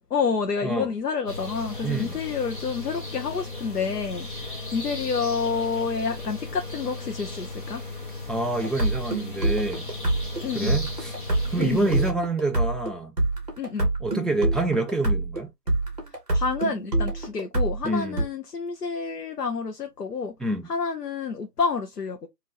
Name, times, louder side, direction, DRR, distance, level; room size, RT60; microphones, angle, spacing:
voice 1, 0.1-7.8 10.4-10.8 11.6-11.9 13.6-13.9 16.3-20.3 20.7-22.3, left 5 dB, 70° left, 0.8 m, -29 dB
sound 1, 1.3-12.1, left 2 dB, 30° left, 0.8 m, -36 dB
voice 2, 1.8-2.1 8.3-9.9 10.5-11.1 11.5-13.1 14.0-15.5 17.8-18.2 20.4-20.7, right 2 dB, ahead, 0.3 m, -27 dB
sound 2, 8.6-18.2, right 2 dB, 25° right, 1.0 m, -26 dB
3.0 x 2.6 x 4.0 m
figure-of-eight pair, 160°, 49 cm